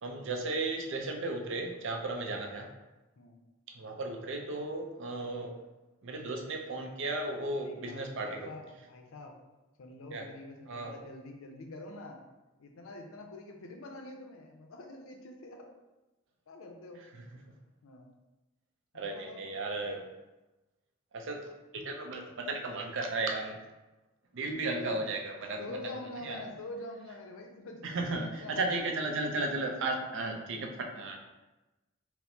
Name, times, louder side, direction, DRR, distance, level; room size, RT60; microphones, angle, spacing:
voice 1, 0.0-2.7 3.8-5.5 6.0-8.5 10.1-10.2 10.7-10.9 18.9-20.0 21.1-21.4 21.7-23.6 24.3-25.8 26.2-26.4 27.8-31.2, right 2 dB, 65° right, 3 dB, 0.5 m, -35 dB
voice 2, 7.5-9.3 9.8-12.2 12.6-15.7 16.5-17.0 17.8-18.1 18.9-19.4 24.4-25.0 25.6-29.1, left 2 dB, 75° left, 3 dB, 0.5 m, -46 dB
4.3 x 2.0 x 2.6 m, 1.1 s
head